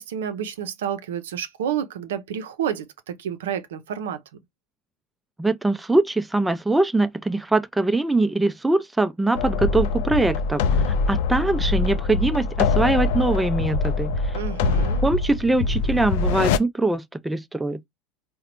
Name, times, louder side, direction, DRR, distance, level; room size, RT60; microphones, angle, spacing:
voice 1, 0.0-4.2 14.3-15.0, right 9 dB, 85° right, 0.5 m, -30 dB
voice 2, 5.4-14.3 15.0-17.8, right 2 dB, 10° right, 0.3 m, -22 dB
sound 1, 9.3-16.6, left 4 dB, 75° left, 0.3 m, -23 dB
3.8 x 2.1 x 2.8 m
hypercardioid pair, 90°, 0 cm